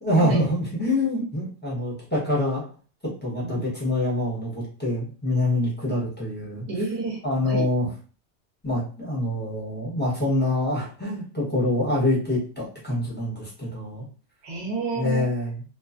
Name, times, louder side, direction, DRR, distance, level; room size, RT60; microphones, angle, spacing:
voice 1, 0.0-2.6 3.2-6.7 7.2-7.9 8.6-14.1 14.9-15.6, left 1 dB, 10° left, -7 dB, 0.9 m, -25 dB
voice 2, 3.4-3.7 6.7-7.6 14.4-15.2, right 3 dB, 35° right, -1 dB, 0.7 m, -30 dB
2.4 x 2.3 x 2.4 m, 0.38 s
omnidirectional pair, 1.2 m